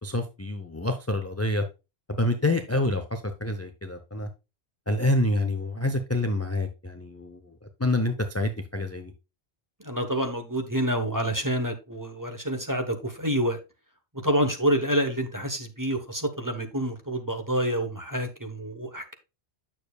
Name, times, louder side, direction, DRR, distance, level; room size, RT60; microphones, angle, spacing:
voice 1, 0.0-1.6 2.1-4.3 4.9-7.5 7.8-9.1, left 1 dB, 15° left, 0.6 m, -27 dB
voice 2, 9.8-13.6 14.1-19.1, right 1 dB, 20° right, 1.0 m, -28 dB
8.9 x 6.8 x 2.3 m
omnidirectional pair, 1.1 m